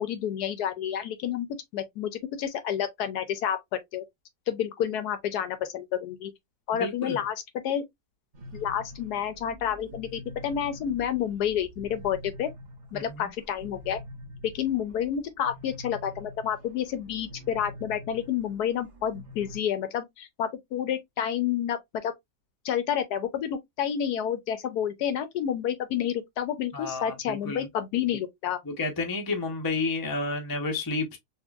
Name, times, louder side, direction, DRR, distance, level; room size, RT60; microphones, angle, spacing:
voice 1, 0.0-1.5 1.7-3.6 3.9-4.0 4.5-6.3 6.7-7.3 7.6-7.8 8.5-12.5 12.9-14.0 14.5-22.1 22.6-28.6, left 9 dB, 70° left, 1.0 m, -29 dB
voice 2, 6.7-7.2 12.9-13.3 26.7-27.7 28.6-31.2, left 3 dB, 35° left, 0.3 m, -31 dB
sound 1, 8.3-19.6, left 1 dB, 30° right, 0.9 m, -45 dB
4.3 x 2.5 x 2.3 m
omnidirectional pair, 2.0 m